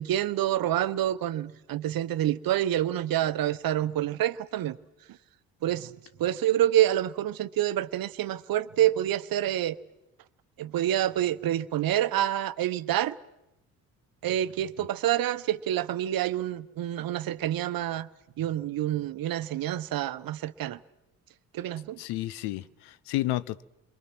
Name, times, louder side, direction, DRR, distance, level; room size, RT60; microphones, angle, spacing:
voice 1, 0.0-4.8 5.6-5.9 6.2-9.8 10.6-13.2 14.2-18.1 18.4-20.8 21.5-22.0, right 12 dB, 60° right, 1.0 m, -27 dB
voice 2, 22.0-23.6, left 16 dB, 75° left, 0.8 m, -31 dB
29.0 x 22.5 x 6.1 m
hypercardioid pair, 55°, 39 cm